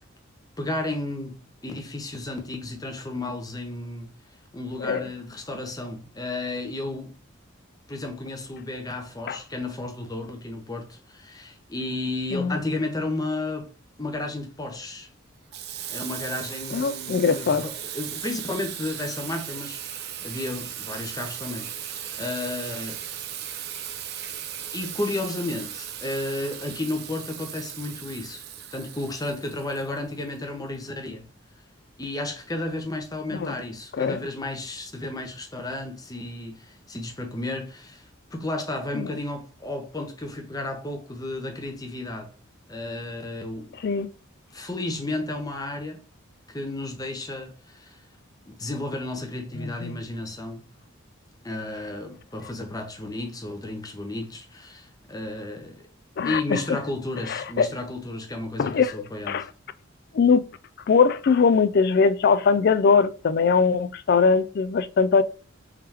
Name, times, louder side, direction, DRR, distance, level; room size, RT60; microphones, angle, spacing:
voice 1, 0.6-4.1 4.5-7.2 7.9-13.7 14.0-15.1 15.9-23.0 24.7-28.4 28.7-31.3 32.0-42.3 42.7-43.8 44.5-46.0 46.5-48.0 48.5-50.6 51.4-55.9 56.2-59.5, left 2 dB, 20° left, 0.8 m, -33 dB
Water tap faucet / Sink (filling or washing), 15.5-30.3, right 10 dB, 50° right, 0.4 m, -37 dB
voice 2, 16.7-17.6 33.3-33.5 34.0-34.2 38.9-39.1 43.8-44.1 49.6-50.0 56.2-56.6 57.3-57.7 58.6-58.9 59.3-59.5 60.1-60.4 60.9-65.2, left 5 dB, 50° left, 0.3 m, -21 dB
3.6 x 3.3 x 2.8 m
head